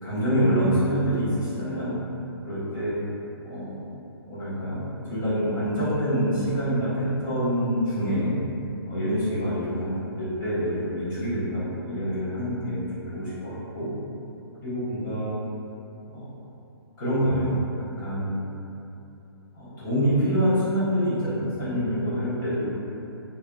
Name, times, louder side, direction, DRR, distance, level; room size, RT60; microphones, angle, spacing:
voice 1, 0.0-1.9 2.4-2.9 3.5-3.8 4.3-4.8 5.0-8.3 8.9-13.9 14.6-15.3 16.1-16.3 17.0-17.7 18.0-18.3 19.5-22.7, equal, 50° left, -12 dB, 1.4 m, -26 dB
3.6 x 2.1 x 2.3 m, 2.9 s
hypercardioid pair, 150°, 13 cm